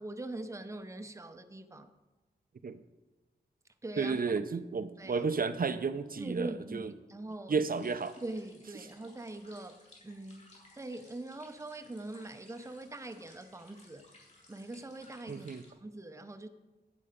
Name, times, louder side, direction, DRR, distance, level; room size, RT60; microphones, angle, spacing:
voice 1, 0.0-1.9 3.8-4.2 5.0-5.3 6.2-7.6 8.2-14.0 14.5-15.5 15.8-16.5, right 2 dB, 15° right, 9 dB, 0.7 m, -43 dB
voice 2, 4.0-6.9 7.5-8.2 15.3-15.6, right 5 dB, 55° right, 12 dB, 0.6 m, -32 dB
sound 1, 7.7-15.7, left 2 dB, 40° left, 3.6 m, -60 dB
11.0 x 8.3 x 5.1 m, 1.2 s
wide cardioid pair, 95°, 18 cm